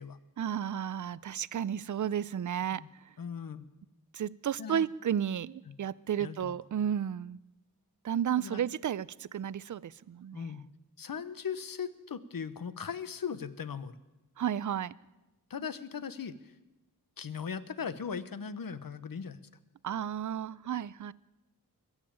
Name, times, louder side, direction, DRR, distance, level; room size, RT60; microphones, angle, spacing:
voice 1, 0.4-2.8 4.1-7.4 8.0-10.5 14.4-14.9 19.8-21.1, right 9 dB, 55° right, 20 dB, 0.5 m, -33 dB
voice 2, 3.2-3.7 4.6-4.8 5.7-5.8 6.2-6.5 8.4-8.6 10.3-10.6 11.0-14.0 15.5-16.5 17.2-19.4, left 6 dB, 65° left, 14 dB, 0.9 m, -38 dB
21.5 x 7.3 x 8.7 m, 1.0 s
wide cardioid pair, 90°, 37 cm